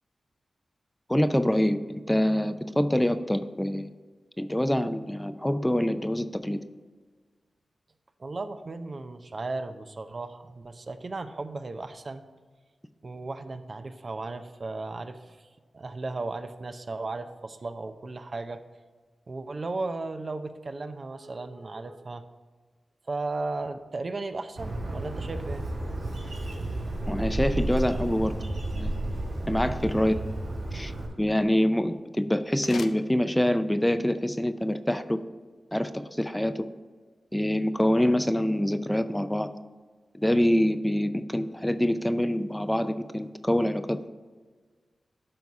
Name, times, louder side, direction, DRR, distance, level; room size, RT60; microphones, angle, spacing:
voice 1, 1.1-3.9 4.4-6.6 27.1-28.4 28.7-29.0 29.5-30.2 30.7-30.9 31.2-35.2 35.7-36.7 37.3-39.5 40.2-44.1, left 1 dB, 10° left, 10 dB, 0.5 m, -25 dB
voice 2, 8.2-12.2 13.0-15.5 15.7-18.6 19.3-22.2 23.1-25.7, right 3 dB, 55° right, 8 dB, 0.6 m, -35 dB
Bird, 24.6-31.1, right 1 dB, 85° right, 2.1 m, -32 dB
sound 1, 32.4-33.8, left 5 dB, 85° left, 0.4 m, -45 dB
12.0 x 4.0 x 4.8 m, 1.4 s
cardioid pair, 45°, 0 cm